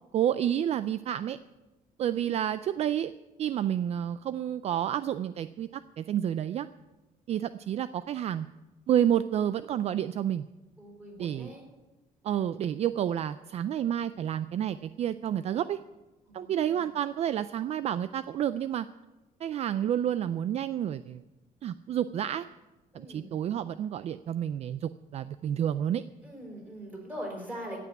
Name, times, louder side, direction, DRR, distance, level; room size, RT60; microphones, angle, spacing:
voice 1, 0.1-1.4 2.0-3.1 3.4-6.7 7.3-8.5 8.9-10.5 11.2-11.5 12.2-15.8 16.3-18.9 19.4-21.2 21.6-22.5 22.9-26.0, right 10 dB, 50° right, 14 dB, 0.4 m, -29 dB
voice 2, 10.8-11.6 16.3-16.8 22.9-23.3 26.2-27.8, equal, 10° right, 0 dB, 4.8 m, -42 dB
16.0 x 6.0 x 9.2 m, 1.1 s
cardioid pair, 140°, 14 cm